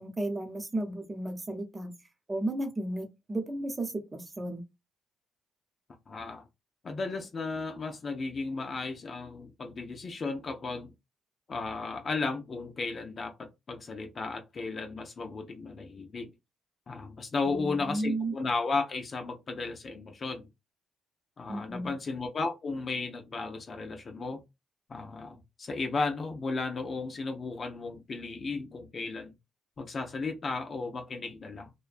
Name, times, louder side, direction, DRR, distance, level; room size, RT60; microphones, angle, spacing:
voice 1, 0.0-1.9 2.3-4.6 17.4-18.3 21.5-21.9, right 1 dB, 25° right, 0.7 m, -34 dB
voice 2, 6.1-6.4 6.8-10.9 11.5-16.3 16.9-20.5 21.4-24.4 24.9-29.3 29.8-31.7, left 3 dB, 40° left, 0.5 m, -34 dB
2.4 x 2.1 x 2.3 m
cardioid pair, 90°, 0 cm